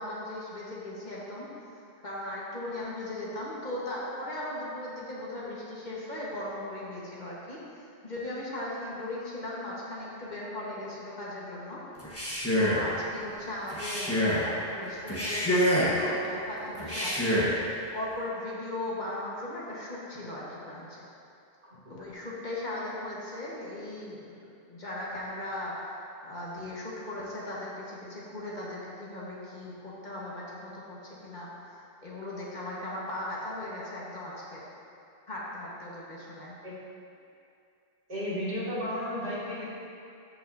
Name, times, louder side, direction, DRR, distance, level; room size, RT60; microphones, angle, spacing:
voice 1, 0.0-1.5 2.0-11.8 12.5-17.5 17.9-21.0 21.9-25.9 26.2-34.6 35.3-36.5, left 1 dB, 45° left, -6 dB, 1.5 m, -38 dB
Male speech man speaking, 12.0-12.9 13.7-14.5 15.1-16.0 16.8-17.6, equal, 15° left, 1.2 m, -26 dB
voice 2, 38.1-39.7, equal, 80° right, -10 dB, 2.6 m, -33 dB
13.5 x 5.7 x 2.7 m, 2.5 s
omnidirectional pair, 1.1 m